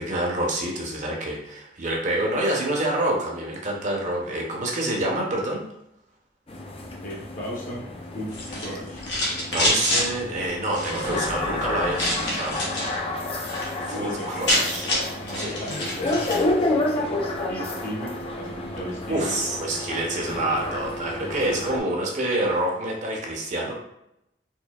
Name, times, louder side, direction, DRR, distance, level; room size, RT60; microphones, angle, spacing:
voice 1, 0.0-5.6 9.5-12.9 13.8-14.9 15.4-15.6 19.1-23.7, right 1 dB, 45° right, -1 dB, 0.7 m, -27 dB
sound 1, 6.5-21.8, left 2 dB, 30° left, 0.5 m, -30 dB
voice 2, 7.0-7.9 8.1-9.0 13.9-19.3, equal, 50° left, -3 dB, 0.9 m, -36 dB
sound 2, 8.3-10.1 10.7-11.2 11.9-12.9 13.3-13.7 14.0-14.1 14.2-16.4, left 1 dB, 85° left, 1.2 m, -26 dB
4.4 x 2.5 x 2.3 m, 0.83 s
head